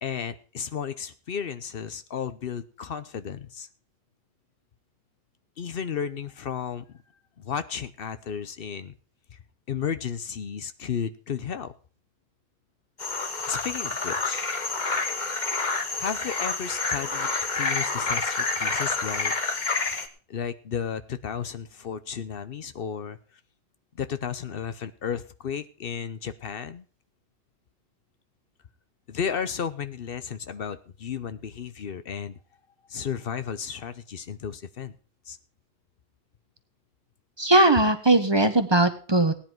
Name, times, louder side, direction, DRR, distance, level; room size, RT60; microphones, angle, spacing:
voice 1, 0.0-3.7 5.6-7.0 7.4-8.9 9.3-9.4 9.7-11.7 13.5-14.4 16.0-19.3 20.3-23.2 23.9-26.8 29.1-32.4 32.9-35.0 35.3-35.4, left 7 dB, 65° left, 12 dB, 0.9 m, -33 dB
sound 1, 13.0-20.1, left 3 dB, 50° left, 1.4 m, -28 dB
voice 2, 37.4-39.3, right 2 dB, 25° right, 9 dB, 1.2 m, -19 dB
17.0 x 10.0 x 4.5 m, 0.39 s
omnidirectional pair, 1.0 m